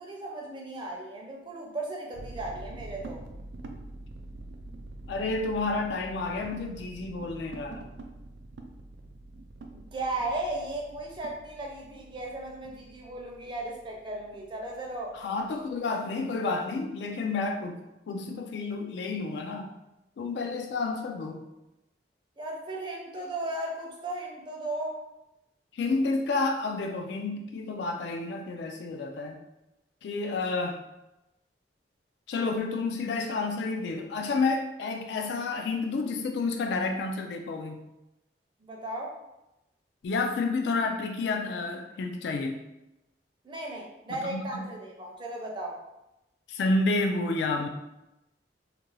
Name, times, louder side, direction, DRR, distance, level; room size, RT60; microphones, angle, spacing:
voice 1, 0.0-3.2 9.7-15.1 22.4-25.0 38.6-39.1 43.4-45.8, right 2 dB, 25° right, -1 dB, 0.5 m, -36 dB
sound 1, 2.1-15.8, right 2 dB, 90° right, 0.4 m, -45 dB
voice 2, 5.1-7.9 15.1-17.8 18.1-19.7 20.2-21.4 25.7-29.4 30.0-30.8 32.3-37.8 40.0-42.6 44.1-44.7 46.5-47.7, left 3 dB, 75° left, 4 dB, 0.3 m, -30 dB
2.4 x 2.2 x 3.1 m, 0.95 s
head